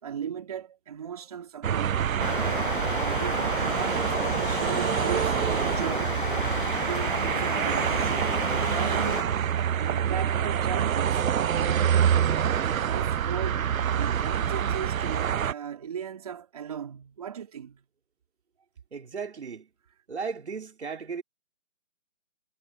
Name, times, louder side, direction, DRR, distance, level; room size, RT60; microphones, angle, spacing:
voice 1, 0.0-6.2 6.9-9.3 9.7-12.2 12.5-13.6 13.9-17.8, right 8 dB, 25° right, 3.2 m, -37 dB
sound 1, 1.6-15.5, right 9 dB, 75° right, 0.6 m, -26 dB
sound 2, 2.2-9.2, left 4 dB, 40° left, 0.9 m, -32 dB
voice 2, 18.9-19.7 20.1-21.2, right 5 dB, 50° right, 4.0 m, -35 dB
hypercardioid pair, 175°, 41 cm